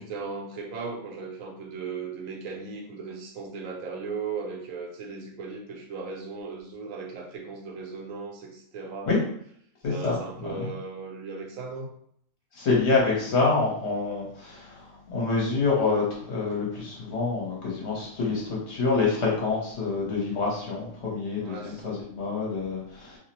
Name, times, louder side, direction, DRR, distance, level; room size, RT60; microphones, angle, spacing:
voice 1, 0.0-9.3 9.9-11.9 21.4-22.0, right 4 dB, 70° right, 1 dB, 1.0 m, -37 dB
voice 2, 9.8-10.2 10.5-10.7 12.6-14.7 15.1-23.2, left 4 dB, 55° left, -3 dB, 1.0 m, -26 dB
2.5 x 2.0 x 2.8 m, 0.65 s
omnidirectional pair, 1.5 m